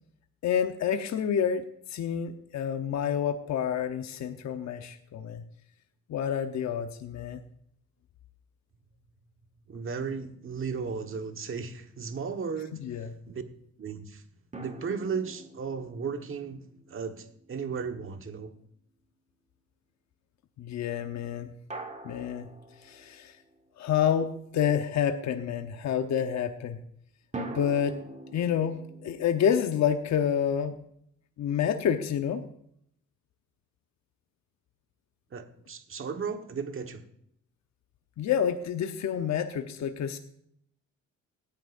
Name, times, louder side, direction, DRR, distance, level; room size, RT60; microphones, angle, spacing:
voice 1, 0.4-5.4 6.1-7.4 12.7-13.1 20.6-21.5 22.0-22.5 22.8-23.4 23.8-26.8 27.5-28.0 28.3-30.8 31.4-32.4 38.2-40.2, left 8 dB, 65° left, 1.0 m, -28 dB
voice 2, 9.7-13.4 13.8-14.2 14.6-18.5 35.3-37.0, right 5 dB, 45° right, 1.4 m, -35 dB
sound 1, 14.5-17.9 21.7-23.7 27.3-30.4, right 2 dB, 25° right, 1.7 m, -44 dB
17.5 x 10.5 x 2.6 m
cardioid pair, 90°, 30 cm